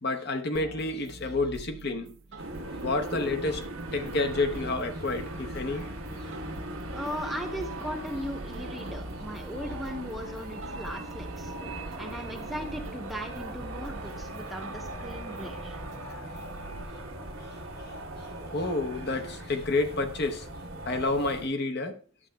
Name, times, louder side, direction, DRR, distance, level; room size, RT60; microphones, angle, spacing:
voice 1, 0.0-2.2 2.8-3.6 3.9-5.9 11.8-11.9 16.0-16.2 16.7-16.9 18.4-20.5 20.9-22.0, left 2 dB, 50° left, 0.7 m, -29 dB
sound 1, 0.5-16.8, right 2 dB, 65° right, 0.6 m, -46 dB
sound 2, 2.4-21.5, right 1 dB, 85° right, 1.2 m, -39 dB
voice 2, 6.9-11.5 12.0-15.8, equal, ahead, 0.7 m, -38 dB
11.0 x 7.3 x 2.2 m
head